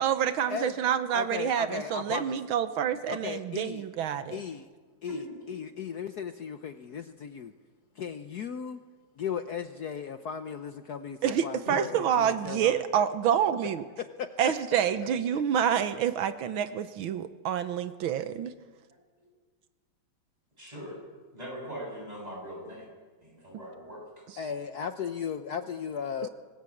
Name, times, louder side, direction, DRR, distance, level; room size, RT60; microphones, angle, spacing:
voice 1, 0.0-4.4 11.2-13.9 14.4-18.5, right 9 dB, 85° right, 11 dB, 1.8 m, -27 dB
voice 2, 1.1-2.4 3.1-3.8 4.3-4.7 5.0-5.2 5.5-7.5 8.0-8.8 9.2-12.8 14.0-14.8 15.3-15.4 24.4-26.3, left 7 dB, 60° left, 9 dB, 1.3 m, -36 dB
voice 3, 5.1-5.5 11.6-11.8 20.6-21.0 21.3-22.9 23.2-24.0, equal, 20° right, -1 dB, 7.5 m, -41 dB
25.5 x 19.5 x 8.6 m, 1.4 s
omnidirectional pair, 2.2 m